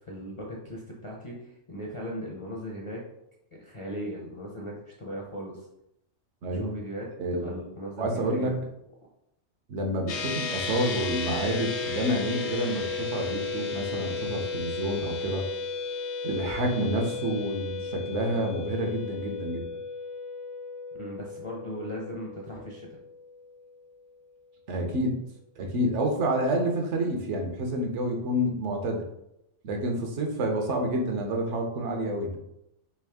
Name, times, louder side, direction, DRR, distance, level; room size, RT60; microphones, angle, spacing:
voice 1, 0.1-3.0 3.6-5.7 6.5-8.6 20.9-22.9, equal, 40° left, -3 dB, 0.5 m, -38 dB
voice 2, 6.4-6.8 7.2-7.6 8.0-8.5 9.7-15.5 16.2-19.7 24.7-25.2 25.6-29.0 29.6-32.4, right 1 dB, 75° right, 2 dB, 1.1 m, -29 dB
sound 1, 10.1-23.7, left 4 dB, 70° left, 0.9 m, -34 dB
3.5 x 3.0 x 3.4 m, 0.82 s
omnidirectional pair, 1.3 m